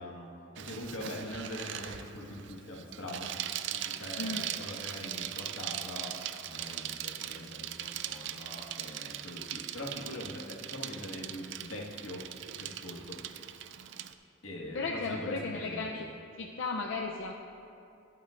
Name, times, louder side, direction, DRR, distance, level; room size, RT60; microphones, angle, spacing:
voice 1, 0.0-3.3 3.7-6.2 6.5-12.3 12.6-13.2 14.4-16.1, left 1 dB, 90° left, -2 dB, 1.6 m, -42 dB
Bicycle, 0.6-14.1, right 11 dB, 65° right, 0.4 m, -40 dB
voice 2, 14.7-16.1 16.4-17.3, left 3 dB, 70° left, 0 dB, 0.6 m, -35 dB
19.0 x 8.6 x 2.5 m, 2.7 s
head